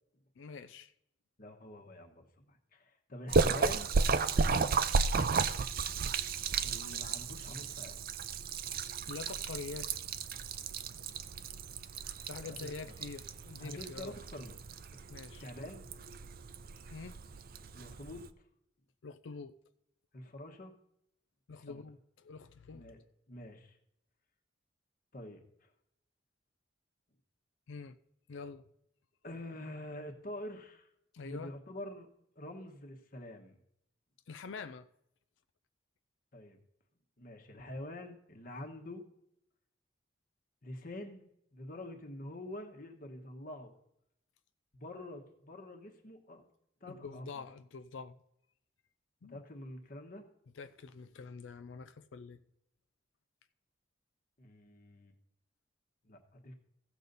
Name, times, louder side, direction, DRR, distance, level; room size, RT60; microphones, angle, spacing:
voice 1, 0.4-0.9 4.5-4.8 7.0-7.1 9.1-9.9 12.2-14.2 15.1-15.5 16.9-17.2 19.0-19.5 21.5-22.9 27.7-28.0 28.3-28.6 31.1-31.5 34.3-34.9 46.9-48.2 49.2-49.4 50.6-52.4, left 4 dB, 80° left, 0.4 m, -46 dB
voice 2, 1.4-3.9 6.6-8.0 12.4-12.6 12.8-13.1 13.6-14.6 15.4-15.8 17.7-18.2 20.1-20.7 21.6-21.8 22.7-23.8 25.1-25.7 29.2-30.9 31.2-32.1 32.3-33.6 36.3-36.6 37.2-39.0 40.6-43.7 44.7-46.4 46.8-47.4 49.3-50.2 54.4-55.1 56.0-56.5, left 1 dB, 50° left, 1.2 m, -46 dB
Splash splatter, 3.3-18.3, right 4 dB, 50° right, 0.5 m, -34 dB
15.5 x 6.8 x 4.0 m
head